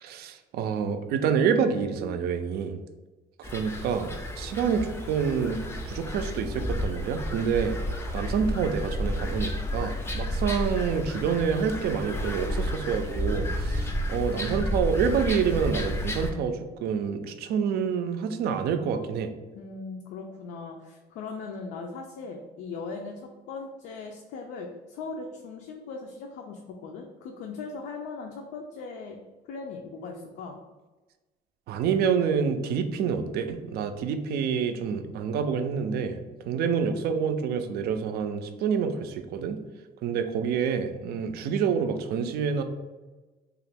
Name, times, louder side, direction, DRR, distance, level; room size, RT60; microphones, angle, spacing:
voice 1, 0.0-2.8 3.4-7.8 8.1-19.3 31.7-36.2 36.5-39.6 40.0-42.6, right 6 dB, 70° right, 8 dB, 0.4 m, -27 dB
sound 1, 3.4-16.3, left 1 dB, 15° left, 0.4 m, -31 dB
voice 2, 19.5-29.2 29.4-30.6, left 4 dB, 80° left, 2 dB, 0.4 m, -39 dB
2.9 x 2.4 x 3.3 m, 1.2 s
cardioid pair, 110°, 17 cm